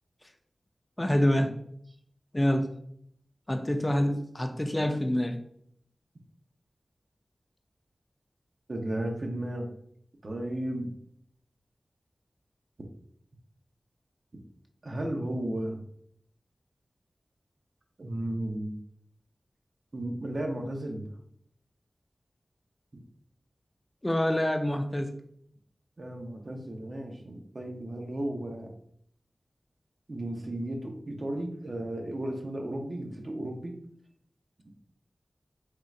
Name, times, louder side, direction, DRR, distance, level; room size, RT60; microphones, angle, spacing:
voice 1, 1.0-1.6 2.3-2.7 3.5-5.4 24.0-25.2, left 1 dB, 20° left, 5 dB, 0.4 m, -26 dB
voice 2, 8.7-9.7 10.2-10.9 14.8-15.8 18.0-18.8 19.9-21.1 22.9-23.0 26.0-28.7 30.1-33.7, right 1 dB, 55° right, 2 dB, 0.8 m, -34 dB
3.6 x 2.4 x 4.1 m, 0.67 s
wide cardioid pair, 65°, 0 cm